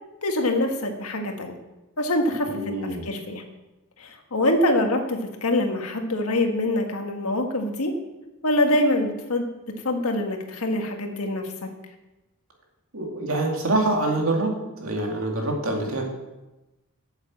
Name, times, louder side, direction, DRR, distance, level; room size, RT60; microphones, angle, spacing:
voice 1, 0.2-1.5 2.0-2.7 3.0-3.4 4.0-7.9 8.4-11.7, left 1 dB, 85° left, 4 dB, 1.6 m, -25 dB
voice 2, 2.4-3.1 12.9-14.5 14.8-16.1, right 2 dB, 70° right, 0 dB, 2.4 m, -25 dB
9.0 x 7.3 x 7.5 m, 1.0 s
head